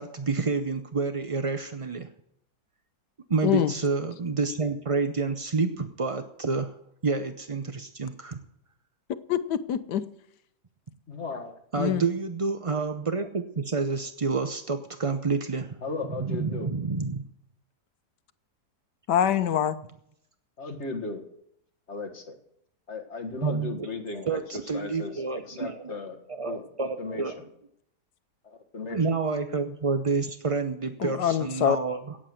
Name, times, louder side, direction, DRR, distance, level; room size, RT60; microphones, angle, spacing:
voice 1, 0.0-2.1 3.3-6.7 7.0-8.4 11.7-15.8 16.2-17.2 23.4-23.9 24.3-25.9 26.3-27.4 28.9-32.2, right 4 dB, 40° right, 0.4 m, -29 dB
voice 2, 9.3-10.0 11.8-12.0 19.1-19.8 31.0-31.8, left 10 dB, 90° left, 1.4 m, -24 dB
voice 3, 11.1-11.6 15.8-16.7 20.6-21.2 21.9-22.4 22.9-24.4 24.7-27.5 28.4-29.0, left 3 dB, 45° left, 1.9 m, -36 dB
17.0 x 7.6 x 7.7 m
omnidirectional pair, 1.7 m